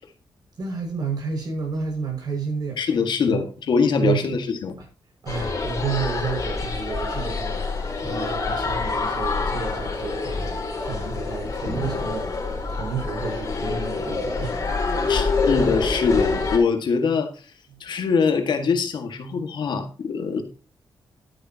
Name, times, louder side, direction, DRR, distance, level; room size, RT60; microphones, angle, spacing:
voice 1, 0.6-2.8 3.2-3.4 4.0-4.3 4.8-4.9 5.2-14.6, right 5 dB, 55° right, 6.1 m, -31 dB
voice 2, 2.8-4.7 15.1-17.3 17.8-20.4, left 5 dB, 70° left, 1.9 m, -23 dB
sound 1, 5.3-16.6, left 3 dB, 40° left, 4.3 m, -26 dB
11.5 x 9.9 x 2.9 m
wide cardioid pair, 125°, 8 cm